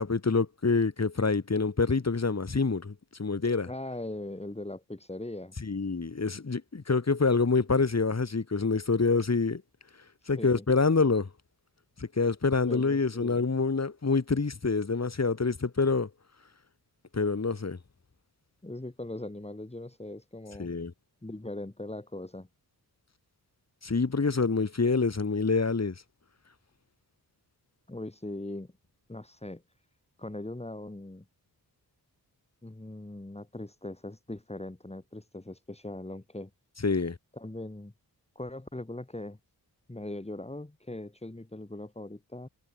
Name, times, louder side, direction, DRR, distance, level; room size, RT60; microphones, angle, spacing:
voice 1, 0.0-2.9 3.2-3.7 5.6-9.6 10.3-11.3 12.0-16.1 17.1-17.8 20.6-20.9 23.8-25.9 36.8-37.2, left 4 dB, 40° left, 4.9 m, -26 dB
voice 2, 3.6-5.5 10.2-10.6 12.6-13.4 18.6-20.7 21.2-22.5 27.9-28.7 29.1-29.6 30.2-31.2 32.6-36.5 37.3-37.9 38.3-39.4 39.9-42.5, left 1 dB, 15° left, 5.1 m, -40 dB
wide cardioid pair, 85°, 39 cm